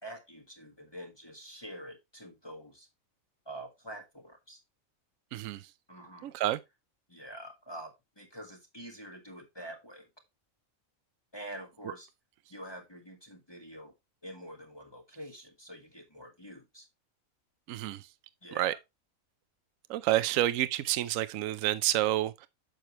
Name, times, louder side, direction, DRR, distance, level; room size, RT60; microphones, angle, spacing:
voice 1, 0.0-2.9 3.4-4.6 5.9-6.3 7.1-10.1 11.3-12.1 12.5-13.9 14.2-16.9 18.4-18.8, right 1 dB, 20° left, 1.5 m, -46 dB
voice 2, 5.3-5.6 6.2-6.6 17.7-18.0 18.6-18.7 19.9-22.5, right 14 dB, 75° right, 1.0 m, -29 dB
9.0 x 6.5 x 3.0 m
omnidirectional pair, 1.5 m